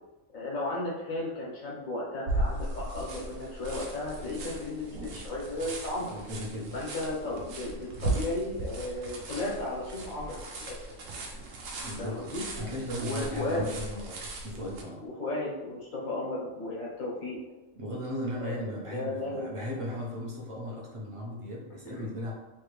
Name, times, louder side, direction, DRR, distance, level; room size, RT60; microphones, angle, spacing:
voice 1, 0.3-6.1 6.7-10.8 12.0-12.4 13.0-13.7 15.0-17.4 18.4-19.9 21.8-22.1, left 2 dB, 90° left, -5 dB, 1.4 m, -35 dB
sound 1, 2.3-14.8, right 2 dB, 75° right, 1.0 m, -37 dB
voice 2, 6.0-6.7 11.8-12.2 12.6-15.0 17.8-22.3, equal, 40° right, -4 dB, 0.4 m, -37 dB
3.1 x 2.5 x 3.2 m, 1.0 s
omnidirectional pair, 1.4 m